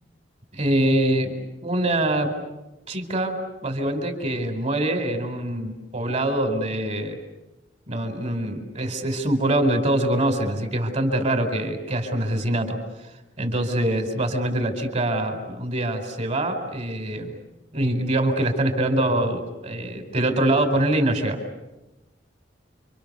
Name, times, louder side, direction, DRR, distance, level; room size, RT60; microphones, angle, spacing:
voice 1, 0.5-1.3 1.6-2.3 2.9-7.2 7.9-12.8 13.4-17.4 17.7-21.4, right 1 dB, 40° right, 6 dB, 4.7 m, -24 dB
30.0 x 26.0 x 6.9 m, 1.0 s
head